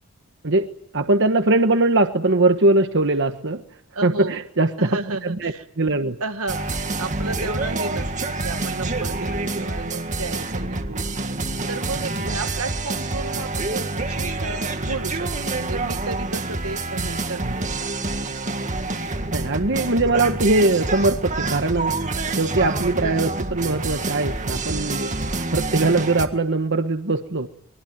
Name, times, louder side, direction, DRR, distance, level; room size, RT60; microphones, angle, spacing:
voice 1, 0.9-3.6 4.0-6.2 17.4-17.5 19.3-27.5, right 2 dB, 55° right, 7 dB, 1.4 m, -21 dB
voice 2, 3.9-4.4 4.8-5.6 6.2-6.7 7.0-11.1 11.7-17.6, right 3 dB, 75° right, 8 dB, 1.7 m, -32 dB
Rockin Audio Clip, 6.5-26.3, right 2 dB, 35° right, 1.9 m, -27 dB
24.0 x 22.5 x 9.3 m, 0.71 s
head